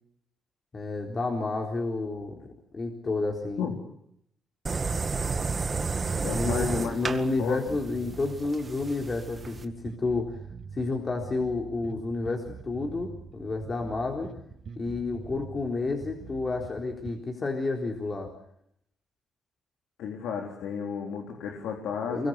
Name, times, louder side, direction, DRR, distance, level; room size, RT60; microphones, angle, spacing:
voice 1, 0.7-3.7 6.3-10.4 10.8-14.3 14.8-18.3 22.1-22.3, left 3 dB, 35° left, 1 dB, 4.0 m, -30 dB
sound 1, 4.7-9.6, right 4 dB, 35° right, 1.9 m, -31 dB
voice 2, 6.2-7.0 7.4-7.6 20.0-22.3, left 7 dB, 85° left, 1 dB, 3.8 m, -33 dB
sound 2, 7.7-17.2, right 5 dB, 50° right, 5.8 m, -44 dB
24.0 x 22.5 x 8.2 m, 0.74 s
cardioid pair, 90°, 0 cm